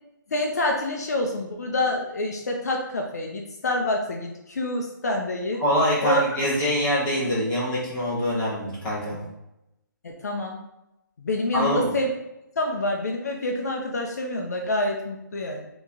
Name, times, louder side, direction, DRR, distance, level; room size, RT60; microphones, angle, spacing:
voice 1, 0.3-5.6 6.0-6.2 10.0-10.6 11.2-12.1 12.6-15.7, left 1 dB, 50° left, 2 dB, 0.6 m, -27 dB
voice 2, 5.6-9.2 11.5-11.9, equal, 10° left, -9 dB, 0.9 m, -24 dB
3.9 x 2.9 x 3.6 m, 0.89 s
hypercardioid pair, 175°, 11 cm